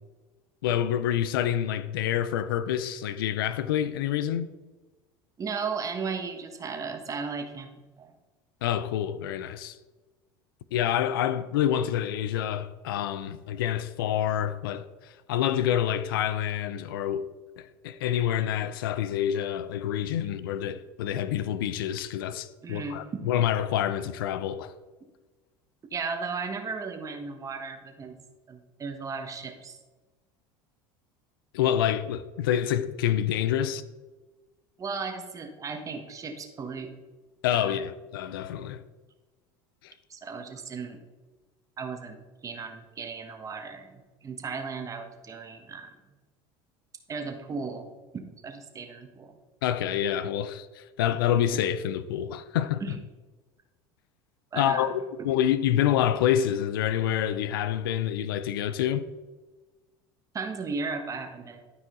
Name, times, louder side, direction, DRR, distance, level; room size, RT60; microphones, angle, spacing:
voice 1, 0.6-4.5 8.6-9.8 10.7-17.3 17.6-24.7 31.5-33.8 37.4-38.8 39.8-39.9 49.6-52.8 54.6-54.9 55.2-59.1, left 10 dB, 90° left, 0.5 m, -27 dB
voice 2, 5.4-7.7 8.0-8.1 22.6-23.3 25.9-28.2 28.5-29.8 34.8-36.9 37.5-37.8 40.1-41.0 41.8-45.9 47.1-49.4 52.8-52.9 54.5-54.9 55.2-55.3 60.3-61.6, right 5 dB, 30° right, 1.3 m, -36 dB
12.0 x 4.9 x 3.7 m
supercardioid pair, 100°, 11 cm